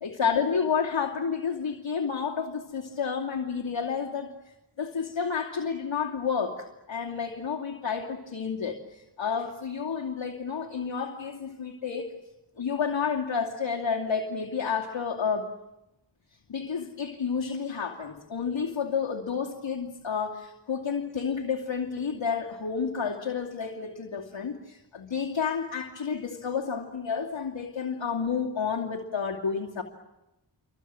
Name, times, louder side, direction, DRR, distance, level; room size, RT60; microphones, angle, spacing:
voice 1, 0.0-4.4 4.8-12.1 12.6-15.5 16.5-29.8, left 6 dB, 85° left, -3 dB, 2.7 m, -30 dB
28.5 x 24.5 x 7.7 m, 0.95 s
wide cardioid pair, 75°, 44 cm